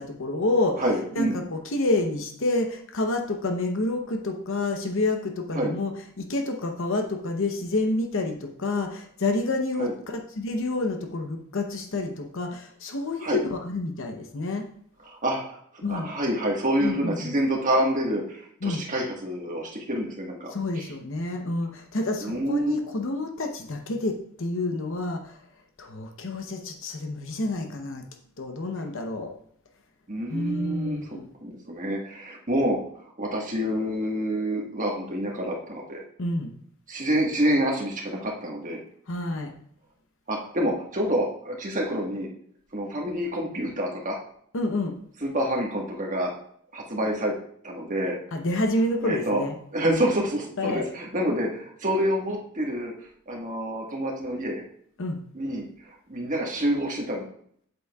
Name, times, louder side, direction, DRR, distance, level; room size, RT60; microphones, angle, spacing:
voice 1, 0.0-0.8 1.2-5.9 6.2-14.6 15.8-16.1 16.8-17.3 18.6-18.8 20.5-25.4 25.8-28.0 28.4-29.3 30.3-31.3 36.2-36.5 39.1-39.5 44.5-45.0 48.3-49.6 49.8-50.1 50.6-50.9 55.0-55.2, left 2 dB, 60° left, 4 dB, 0.8 m, -28 dB
voice 2, 0.8-1.4 5.5-5.7 9.8-9.9 13.2-13.4 15.0-15.6 15.9-20.9 22.2-22.8 30.1-31.0 31.4-32.8 33.2-36.0 36.9-38.8 40.3-42.3 42.7-44.2 45.2-46.3 46.7-47.3 47.6-48.2 49.0-49.4 49.7-52.9 53.3-54.6 55.3-55.7 56.1-57.2, equal, 35° right, -1 dB, 1.5 m, -27 dB
8.1 x 8.1 x 2.3 m, 0.64 s
head